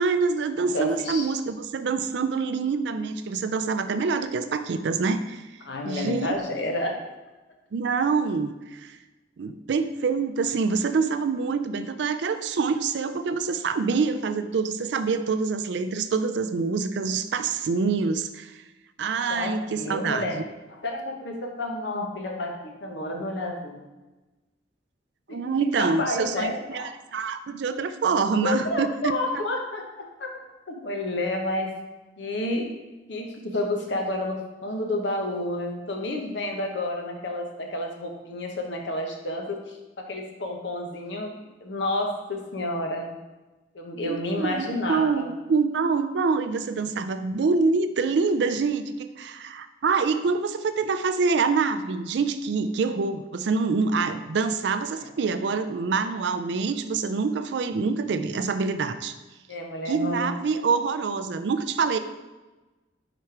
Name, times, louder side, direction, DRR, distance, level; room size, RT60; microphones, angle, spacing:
voice 1, 0.0-5.4 5.8-6.4 7.7-9.0 9.4-18.6 19.0-20.4 25.3-28.9 44.1-59.2 59.9-62.0, right 4 dB, 65° right, 11 dB, 0.4 m, -26 dB
voice 2, 0.7-1.3 5.6-7.0 19.3-20.4 20.7-23.8 25.3-25.5 25.8-26.9 28.4-30.3 30.7-31.7 32.2-32.7 33.1-41.3 41.6-43.1 43.7-45.3 59.5-60.3, left 1 dB, 75° left, 2 dB, 1.0 m, -30 dB
5.0 x 4.3 x 4.6 m, 1.1 s
head